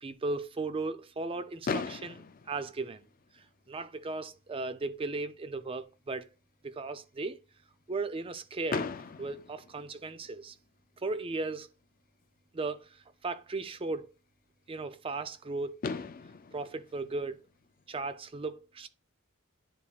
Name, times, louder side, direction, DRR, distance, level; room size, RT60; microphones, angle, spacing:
voice 1, 0.0-3.0 3.3-6.3 6.6-7.4 7.9-8.9 9.2-10.6 11.0-11.7 12.5-14.1 14.7-15.7 16.5-17.4 17.9-18.9, right 3 dB, 25° right, 0.4 m, -36 dB
Fireworks, 1.6-3.7 4.5-4.6 4.8-5.0 5.3-5.4 8.7-10.5 12.2-12.3 15.4-15.5 15.8-18.1, left 4 dB, 40° left, 0.4 m, -39 dB
10.0 x 4.2 x 2.4 m
head